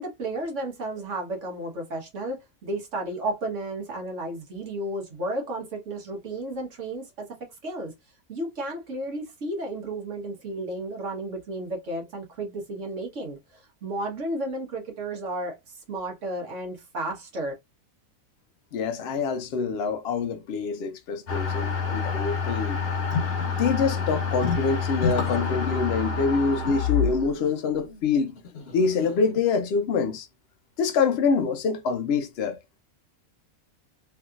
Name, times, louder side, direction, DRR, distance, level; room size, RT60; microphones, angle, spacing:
voice 1, 0.0-7.3 7.6-7.9 8.3-17.5, right 1 dB, 55° right, 1.5 m, -33 dB
voice 2, 18.7-22.8 23.6-28.4 28.7-30.3 30.8-32.6, left 5 dB, 70° left, 0.6 m, -25 dB
sound 1, 21.3-29.4, left 5 dB, 50° left, 1.0 m, -28 dB
3.3 x 2.7 x 2.4 m
omnidirectional pair, 1.5 m